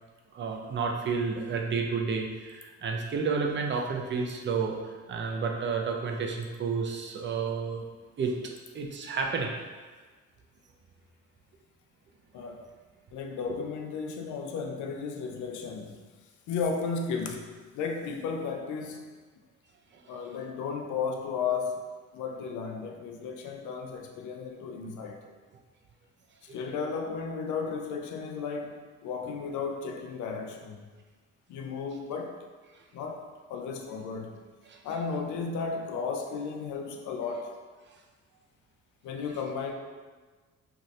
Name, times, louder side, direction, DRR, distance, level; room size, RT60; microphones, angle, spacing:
voice 1, 0.3-7.8 8.2-8.3 8.7-9.5 13.3-13.4 26.5-26.6 34.7-34.8, right 5 dB, 40° right, 1 dB, 0.5 m, -31 dB
voice 2, 12.3-12.7 13.1-16.0 16.5-19.1 20.1-21.8 22.1-25.2 26.5-30.9 31.5-32.4 32.9-34.4 34.8-37.5 39.0-39.7, left 5 dB, 75° left, 3 dB, 0.5 m, -34 dB
2.7 x 2.5 x 3.1 m, 1.4 s
cardioid pair, 90°, 30 cm